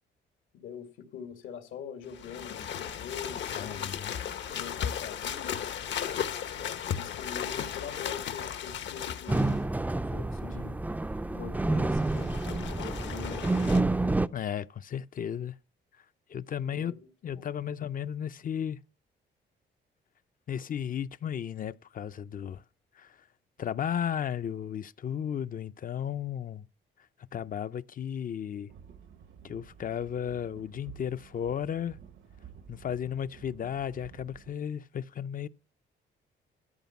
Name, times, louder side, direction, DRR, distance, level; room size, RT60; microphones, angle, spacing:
voice 1, 0.5-3.9 4.5-5.7 6.5-9.6 10.1-10.8 11.3-14.0 16.7-17.5, left 7 dB, 85° left, 2.3 m, -44 dB
sound 1, 2.1-9.6 11.9-13.8, left 8 dB, 65° left, 1.0 m, -36 dB
voice 2, 3.5-4.1 14.3-15.6 16.3-16.9 17.2-18.8 20.5-22.6 23.0-23.2 23.6-26.7 27.3-28.7 29.4-32.0 32.7-35.5, left 9 dB, 45° left, 0.5 m, -34 dB
sound 2, 9.3-14.3, right 2 dB, 10° right, 0.4 m, -28 dB
sound 3, 28.7-34.5, right 8 dB, 75° right, 1.2 m, -52 dB
13.5 x 5.1 x 7.0 m
cardioid pair, 90°, 20 cm